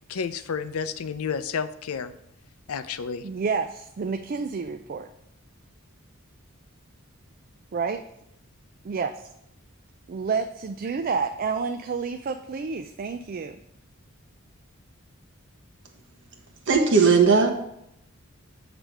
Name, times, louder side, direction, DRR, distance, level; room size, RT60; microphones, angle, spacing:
voice 1, 0.0-2.1 2.7-3.3, left 6 dB, 85° left, 13 dB, 0.5 m, -31 dB
voice 2, 3.2-5.1 7.7-8.0 8.8-9.2 10.1-13.6, right 5 dB, 45° right, 7 dB, 0.4 m, -29 dB
voice 3, 16.7-17.5, right 5 dB, 60° right, 1 dB, 1.3 m, -17 dB
8.0 x 3.4 x 6.0 m, 0.78 s
head